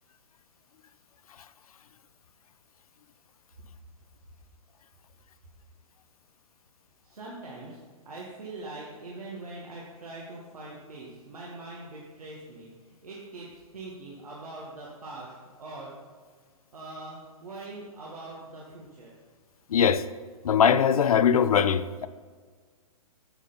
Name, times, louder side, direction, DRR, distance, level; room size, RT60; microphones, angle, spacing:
voice 1, 7.0-7.8 8.1-12.7 13.0-15.9 16.7-19.1, right 2 dB, 80° right, 1.6 m, -42 dB
voice 2, 19.7-20.0 20.4-22.1, left 8 dB, 75° left, 0.5 m, -21 dB
8.8 x 6.8 x 4.0 m
hypercardioid pair, 130°, 19 cm